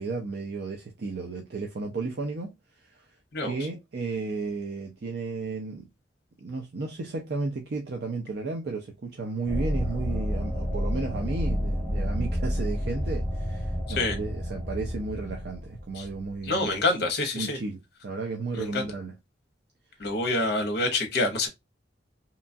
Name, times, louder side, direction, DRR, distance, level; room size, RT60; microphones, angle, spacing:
voice 1, 0.0-3.1 3.4-5.9 6.4-17.0 17.3-19.1, right 3 dB, 55° right, 0.5 m, -33 dB
sound 1, 9.5-16.7, equal, 5° left, 0.5 m, -30 dB
voice 2, 16.4-17.6 18.6-18.8 20.0-21.5, left 2 dB, 55° left, 0.8 m, -26 dB
2.8 x 2.3 x 2.6 m
head